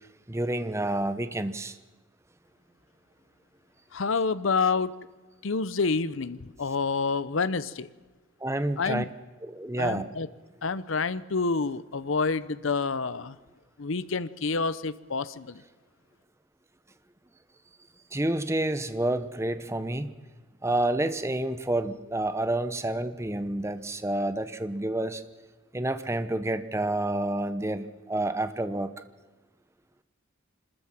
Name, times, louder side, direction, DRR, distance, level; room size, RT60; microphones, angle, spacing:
voice 1, 0.3-1.8 8.4-9.0 9.4-10.0 18.1-20.1 20.6-25.2 25.7-28.9, right 1 dB, 15° right, 11 dB, 0.9 m, -29 dB
voice 2, 3.9-4.9 5.4-7.9 8.8-9.1 9.8-10.3 10.6-13.4 13.8-15.6, left 4 dB, 75° left, 16 dB, 0.8 m, -28 dB
26.0 x 13.5 x 7.4 m, 1.3 s
head